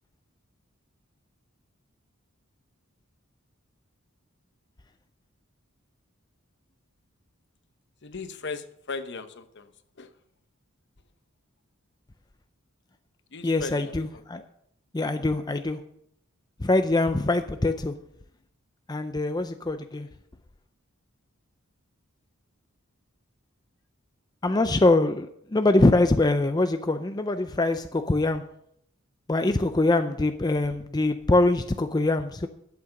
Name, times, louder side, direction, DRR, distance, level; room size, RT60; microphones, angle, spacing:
voice 1, 8.0-9.7 10.0-10.1 13.3-14.2, left 4 dB, 55° left, 10 dB, 1.0 m, -37 dB
voice 2, 13.4-14.4 14.9-15.8 16.6-17.9 18.9-20.1 24.4-28.4 29.3-32.5, left 2 dB, 20° left, 8 dB, 0.5 m, -23 dB
12.0 x 8.5 x 6.5 m, 0.73 s
head